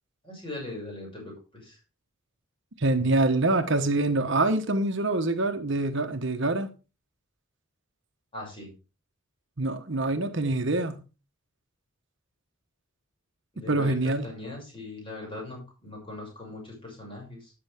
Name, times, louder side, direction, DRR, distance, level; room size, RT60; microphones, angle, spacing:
voice 1, 0.2-1.8 8.3-8.7 13.5-17.5, left 2 dB, 25° left, 6.5 m, -40 dB
voice 2, 2.8-6.7 9.6-11.0 13.6-14.3, right 2 dB, 55° right, 1.1 m, -25 dB
13.0 x 8.8 x 3.6 m
head